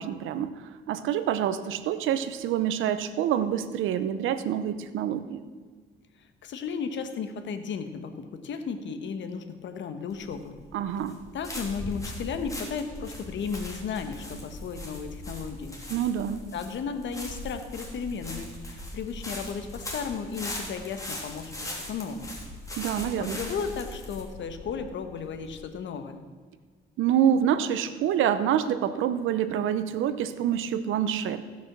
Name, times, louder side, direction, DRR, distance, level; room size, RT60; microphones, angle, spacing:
voice 1, 0.0-5.4 10.7-11.2 15.9-16.5 22.8-23.4 27.0-31.5, right 9 dB, 85° right, 12 dB, 0.8 m, -27 dB
voice 2, 6.4-10.6 11.3-15.8 16.5-22.4 23.2-26.2, left 6 dB, 70° left, 8 dB, 1.2 m, -34 dB
sound 1, 10.1-25.6, left 1 dB, 15° left, 2.9 m, -40 dB
16.0 x 6.2 x 6.0 m, 1.5 s
cardioid pair, 90°, 20 cm